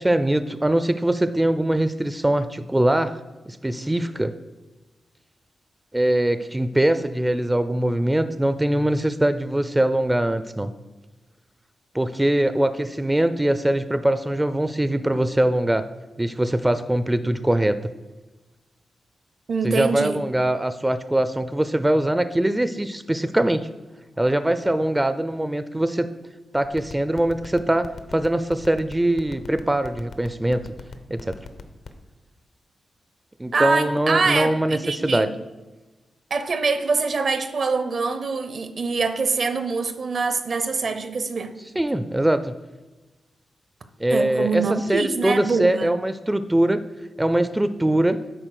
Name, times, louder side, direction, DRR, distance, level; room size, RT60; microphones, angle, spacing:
voice 1, 0.0-3.2 3.5-4.3 5.9-10.7 11.9-15.8 16.2-17.8 19.6-23.7 24.2-26.1 26.5-30.6 31.1-31.4 33.4-35.3 41.8-42.5 44.0-44.6 44.9-46.8 47.2-48.2, right 1 dB, 15° right, 11 dB, 0.4 m, -22 dB
voice 2, 19.5-20.2 33.5-35.3 36.3-41.5 44.1-45.9, right 4 dB, 60° right, 9 dB, 0.8 m, -24 dB
sound 1, 26.8-32.0, left 5 dB, 75° left, 0.8 m, -37 dB
8.9 x 4.2 x 6.3 m, 1.1 s
cardioid pair, 65°, 0 cm